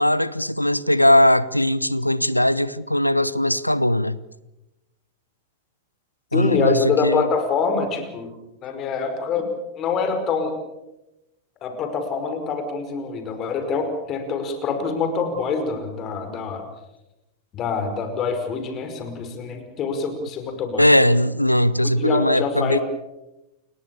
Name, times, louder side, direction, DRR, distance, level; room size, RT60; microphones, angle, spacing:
voice 1, 0.0-4.2 6.3-7.3 20.8-22.8, left 1 dB, 90° left, 0.9 m, -19 dB
voice 2, 6.3-8.3 8.6-10.5 11.6-16.6 17.5-20.9 22.0-22.8, left 5 dB, 30° left, 5.2 m, -25 dB
29.5 x 21.5 x 7.0 m
figure-of-eight pair, 90°, 0 cm